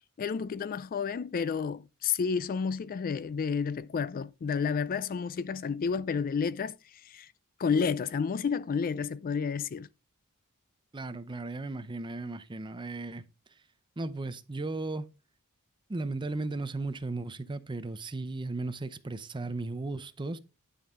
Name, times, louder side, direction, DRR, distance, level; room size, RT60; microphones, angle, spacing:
voice 1, 0.2-6.8 7.0-7.3 7.6-9.9, left 6 dB, 40° left, 0.3 m, -30 dB
voice 2, 10.9-13.2 14.0-15.1 15.9-20.4, right 2 dB, 20° right, 0.6 m, -36 dB
10.0 x 5.5 x 3.6 m
head